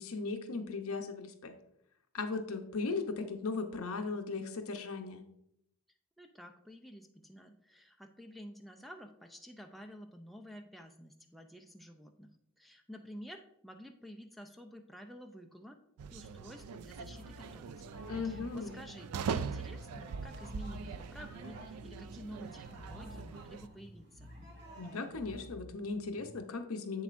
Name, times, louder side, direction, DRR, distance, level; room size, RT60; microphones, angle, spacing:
voice 1, 0.0-1.5 2.1-5.2 18.1-18.7 24.8-27.0, left 4 dB, 65° left, 6 dB, 0.8 m, -37 dB
voice 2, 6.2-15.8 16.1-17.7 18.2-24.3, equal, ahead, 3 dB, 0.4 m, -51 dB
sound 1, 16.0-23.7, right 6 dB, 80° right, 0.4 m, -42 dB
Bass guitar, 16.9-26.4, left 1 dB, 20° right, 1.8 m, -53 dB
sound 2, 17.0-25.5, equal, 50° right, 1.9 m, -56 dB
8.1 x 7.0 x 2.5 m, 0.77 s
head